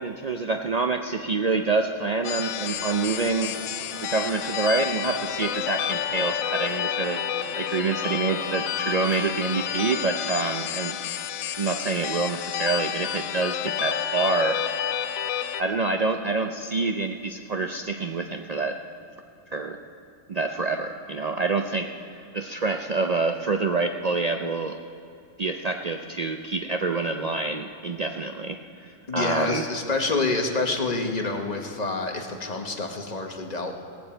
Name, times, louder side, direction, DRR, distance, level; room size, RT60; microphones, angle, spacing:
voice 1, 0.0-3.6 4.0-7.2 7.5-11.0 11.6-14.9 15.6-18.8 19.5-19.8 20.3-24.8 25.4-29.6, right 3 dB, 65° right, 5 dB, 0.4 m, -27 dB
sound 1, 2.2-15.6, left 10 dB, 90° left, 1.0 m, -30 dB
sound 2, 2.2-9.6, equal, 85° right, 4.1 m, -43 dB
voice 2, 29.1-33.7, left 3 dB, 35° left, 3 dB, 1.2 m, -27 dB
17.5 x 14.5 x 4.4 m, 2.6 s
omnidirectional pair, 1.4 m